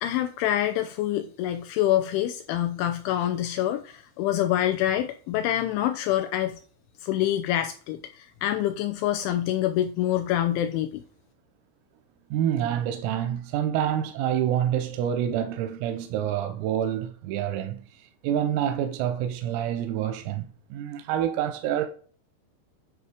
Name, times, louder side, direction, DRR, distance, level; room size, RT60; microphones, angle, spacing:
voice 1, 0.0-6.6 7.0-11.0, left 12 dB, 85° left, 2.8 m, -26 dB
voice 2, 12.3-17.8 18.2-21.9, right 10 dB, 90° right, 3.5 m, -27 dB
9.9 x 4.1 x 6.6 m
omnidirectional pair, 5.9 m